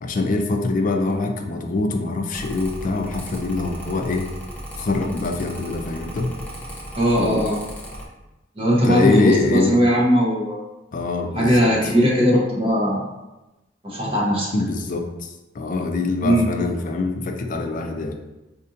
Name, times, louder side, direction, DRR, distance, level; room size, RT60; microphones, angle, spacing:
voice 1, 0.0-4.3 4.8-6.3 8.8-9.8 10.9-11.7 14.5-15.3 15.6-18.2, left 3 dB, 45° left, 4 dB, 0.4 m, -23 dB
Mechanical fan, 2.3-8.1, equal, 10° left, 0.7 m, -36 dB
voice 2, 6.9-7.6 8.6-10.6 11.3-13.1 13.8-14.5 16.2-16.5, equal, 30° right, -4 dB, 0.8 m, -19 dB
4.1 x 2.6 x 2.6 m, 1.0 s
head